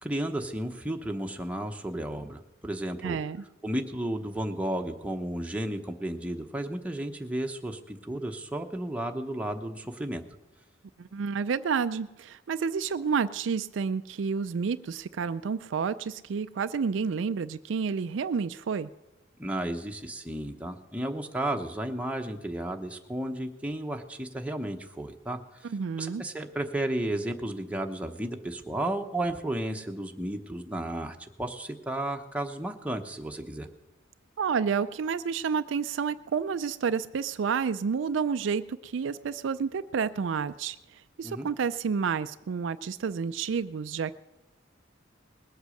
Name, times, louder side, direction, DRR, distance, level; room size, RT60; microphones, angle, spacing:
voice 1, 0.0-3.2 3.6-10.2 19.4-25.4 26.0-33.7 41.2-41.5, right 1 dB, 5° right, 3 dB, 1.0 m, -33 dB
voice 2, 3.0-3.4 11.0-18.9 25.6-26.2 34.4-40.8 41.2-44.1, right 6 dB, 70° right, 12 dB, 0.4 m, -30 dB
20.0 x 8.1 x 6.5 m, 1.0 s
head